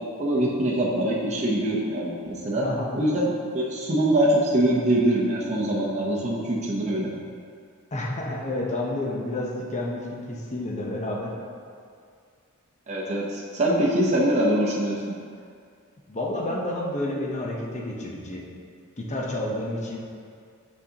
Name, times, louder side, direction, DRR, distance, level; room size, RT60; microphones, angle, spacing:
voice 1, 0.2-2.7 2.9-7.1 12.9-15.0, right 1 dB, 35° right, -5 dB, 0.8 m, -23 dB
voice 2, 2.6-3.0 7.9-11.3 16.1-18.5 19.0-20.0, left 1 dB, 35° left, -2 dB, 0.8 m, -30 dB
6.4 x 6.0 x 2.9 m, 2.3 s
head